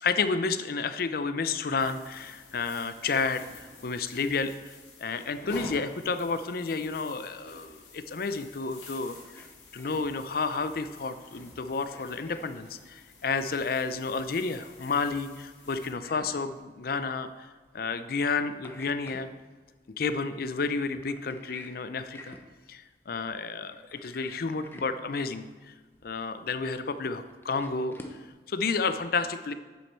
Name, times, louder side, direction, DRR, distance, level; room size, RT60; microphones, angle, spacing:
voice 1, 0.0-9.5 9.7-17.5 17.7-19.3 20.0-22.4 22.7-25.7 26.0-28.0 28.5-29.5, left 4 dB, 55° left, 11 dB, 0.5 m, -31 dB
sound 1, 1.8-15.9, left 2 dB, 85° left, 2.4 m, -49 dB
sound 2, 8.9-28.3, left 1 dB, 10° left, 0.7 m, -52 dB
8.5 x 7.4 x 4.4 m, 1.3 s
head